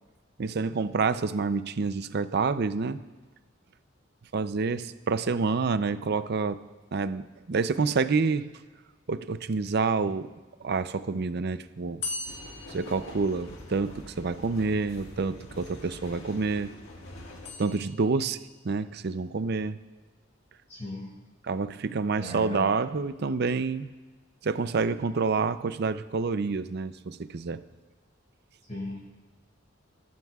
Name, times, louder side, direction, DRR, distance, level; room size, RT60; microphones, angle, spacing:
voice 1, 0.4-3.0 4.3-6.6 6.9-8.5 9.1-10.3 10.6-12.0 12.7-16.7 17.6-18.4 18.6-19.8 21.4-23.9 24.4-27.6, right 4 dB, 55° right, 13 dB, 0.5 m, -28 dB
sound 1, 12.0-14.0 17.4-18.5, left 3 dB, 60° left, 1.7 m, -40 dB
sound 2, 12.2-17.5, left 1 dB, 85° left, 1.7 m, -45 dB
voice 2, 20.7-21.1 22.1-22.7 28.7-29.0, equal, 35° left, -7 dB, 4.8 m, -37 dB
21.0 x 12.5 x 2.4 m, 1.3 s
head